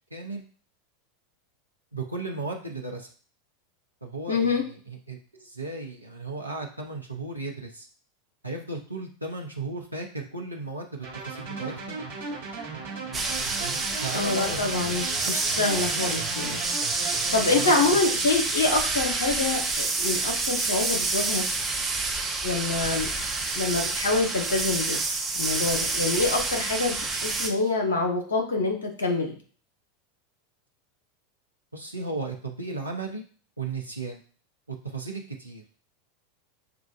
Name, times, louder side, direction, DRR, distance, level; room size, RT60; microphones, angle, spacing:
voice 1, 0.1-0.4 1.9-3.1 4.0-7.9 8.4-12.0 13.4-14.9 17.4-18.3 31.7-33.2 33.6-34.2 34.7-35.6, right 3 dB, 85° right, 0 dB, 0.7 m, -35 dB
voice 2, 4.3-4.6 14.1-16.6 17.3-21.4 22.4-23.1 23.5-25.0 25.3-29.4, left 3 dB, 70° left, 2 dB, 1.0 m, -26 dB
sound 1, 11.0-17.9, right 4 dB, 65° right, 1.5 m, -37 dB
sound 2, 13.1-27.5, right 3 dB, 15° right, 0.8 m, -28 dB
6.7 x 2.4 x 2.4 m, 0.42 s
figure-of-eight pair, 85°, 0 cm